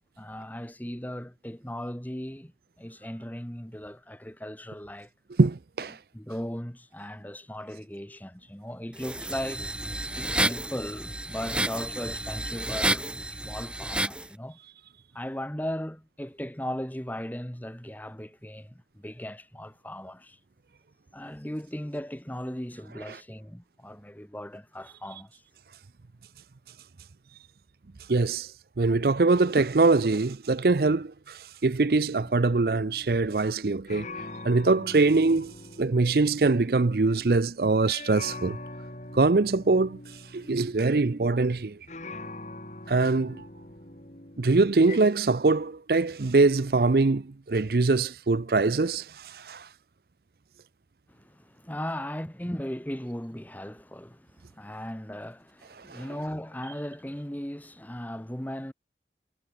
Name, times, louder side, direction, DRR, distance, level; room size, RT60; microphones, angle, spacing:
voice 1, 0.0-5.1 5.9-9.7 10.2-14.6 15.1-20.4 21.1-25.4 29.5-29.6 51.1-58.7, equal, 10° left, 1.5 m, -37 dB
voice 2, 5.4-6.0 28.1-28.5 28.8-34.1 34.4-35.5 35.8-38.6 39.1-40.0 40.3-41.8 42.9-43.5 44.4-49.7 55.9-56.0, right 3 dB, 55° right, 0.6 m, -23 dB
sound 1, 9.0-14.3, right 1 dB, 5° right, 1.9 m, -30 dB
sound 2, 31.9-37.5 37.9-45.0, left 2 dB, 40° left, 4.0 m, -43 dB
head